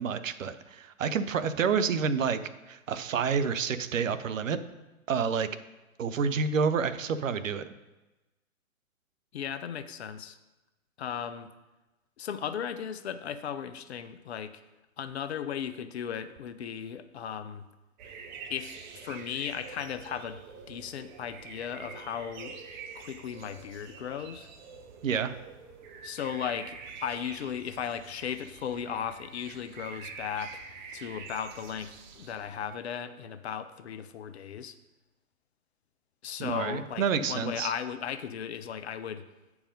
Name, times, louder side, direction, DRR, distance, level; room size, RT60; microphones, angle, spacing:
voice 1, 0.0-2.4 2.7-4.6 5.1-5.5 6.0-7.7 25.0-25.3 36.4-37.7, right 6 dB, 65° right, 11 dB, 0.7 m, -28 dB
voice 2, 9.3-10.4 11.0-11.5 12.2-14.6 15.0-17.6 18.5-18.7 19.0-20.4 20.7-22.6 22.9-24.5 26.0-30.6 30.9-34.7 36.2-39.2, left 8 dB, 50° left, 11 dB, 0.6 m, -36 dB
sound 1, 18.0-32.7, right 5 dB, 35° right, 0.8 m, -46 dB
8.6 x 4.7 x 5.1 m, 1.1 s
figure-of-eight pair, 120°, 42 cm